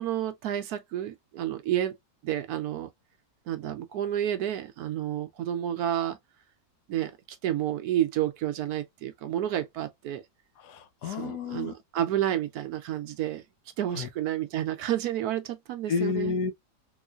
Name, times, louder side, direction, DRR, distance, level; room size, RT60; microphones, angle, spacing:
voice 1, 0.0-2.0 2.2-2.9 3.5-6.2 6.9-10.2 11.0-13.4 13.8-16.3, right 11 dB, 70° right, 1.0 m, -30 dB
voice 2, 10.6-11.7 13.9-14.1 15.9-16.5, left 5 dB, 75° left, 1.2 m, -30 dB
3.8 x 3.0 x 2.3 m
omnidirectional pair, 1.8 m